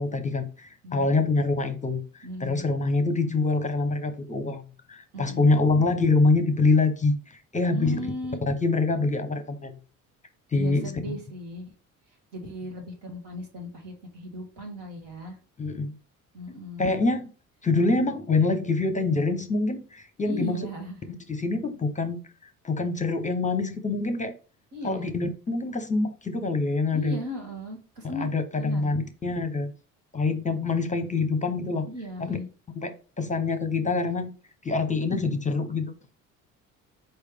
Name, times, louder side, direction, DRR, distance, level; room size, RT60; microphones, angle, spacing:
voice 1, 0.0-4.6 4.9-8.1 8.5-9.7 10.5-10.9 15.6-16.0 16.8-17.3 17.6-20.6 21.3-24.4 24.8-27.2 28.0-29.7 30.1-31.9 32.2-32.4 32.8-34.3 34.6-35.9, left 3 dB, 20° left, 0.7 m, -25 dB
voice 2, 0.8-1.4 2.2-2.6 5.1-5.5 7.7-8.4 10.5-11.7 12.3-15.4 16.3-16.9 20.2-21.0 24.7-25.2 26.9-28.3 28.5-28.9 31.8-32.5, equal, 75° right, 1.8 m, -37 dB
4.3 x 3.2 x 3.4 m
hypercardioid pair, 55°, 41 cm